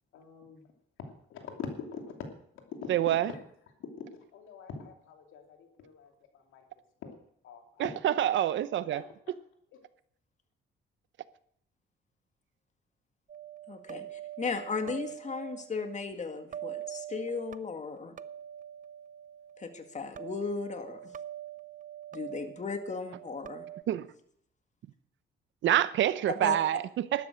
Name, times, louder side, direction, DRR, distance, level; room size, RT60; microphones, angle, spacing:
voice 1, 0.1-0.6 1.0-2.1 2.8-2.9 3.3-3.4 3.8-4.0 4.3-6.6 7.0-7.2 7.4-8.2 8.9-9.0, left 6 dB, 90° left, 2.7 m, -44 dB
voice 2, 2.9-3.3 7.8-9.0 23.9-24.1 25.6-27.3, right 12 dB, 75° right, 0.8 m, -27 dB
sound 1, 13.3-23.8, right 11 dB, 40° right, 0.6 m, -44 dB
voice 3, 13.7-18.2 19.6-21.1 22.1-23.7 26.3-26.6, left 5 dB, 35° left, 2.0 m, -36 dB
12.5 x 11.5 x 6.4 m
cardioid pair, 90°, 20 cm